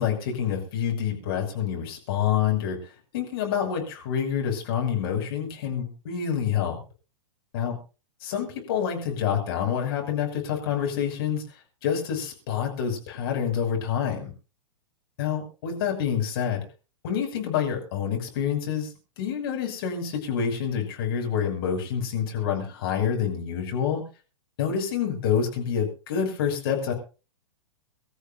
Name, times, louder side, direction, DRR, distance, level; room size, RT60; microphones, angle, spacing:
voice 1, 0.0-6.8 7.5-7.7 8.2-11.4 11.8-14.3 15.2-16.6 17.0-18.9 19.2-24.0 24.6-26.9, left 8 dB, 45° left, 1 dB, 6.2 m, -27 dB
25.5 x 13.5 x 2.6 m, 0.33 s
figure-of-eight pair, 105°, 17 cm